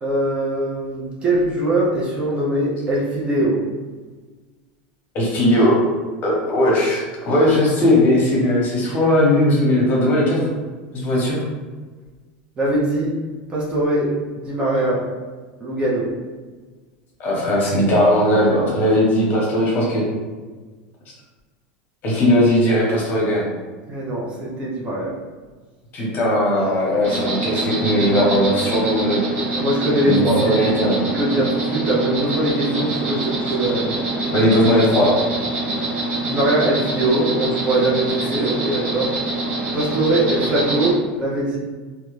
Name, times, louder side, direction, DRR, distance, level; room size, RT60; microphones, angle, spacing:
voice 1, 0.0-3.7 12.6-13.2 13.5-15.1 15.6-16.1 23.9-25.2 29.5-30.6 30.8-34.0 36.2-39.2 39.7-41.6, right 1 dB, 20° right, -6 dB, 0.5 m, -21 dB
voice 2, 5.1-5.8 6.2-10.5 10.9-11.4 17.2-20.0 22.0-23.5 25.9-29.4 30.0-31.0 34.3-35.2, left 1 dB, 40° left, -4 dB, 0.9 m, -18 dB
Insect, 27.0-40.9, right 2 dB, 45° right, 0.9 m, -25 dB
2.4 x 2.1 x 3.0 m, 1.4 s
supercardioid pair, 140°, 5 cm